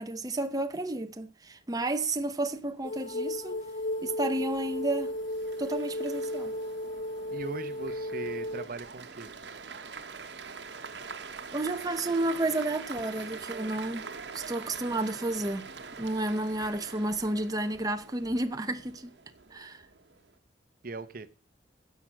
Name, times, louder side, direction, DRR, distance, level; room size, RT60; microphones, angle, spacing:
voice 1, 0.0-3.6 4.0-5.1 5.6-6.5 11.5-14.1 14.3-15.7 16.0-19.1 19.5-19.8, right 2 dB, 20° right, 0.9 m, -31 dB
sound 1, 2.1-20.4, right 5 dB, 75° right, 1.4 m, -45 dB
sound 2, 2.8-8.7, left 1 dB, 45° left, 0.8 m, -34 dB
voice 2, 7.3-9.3 20.8-21.3, right 3 dB, 50° right, 0.9 m, -39 dB
16.0 x 6.2 x 6.4 m
head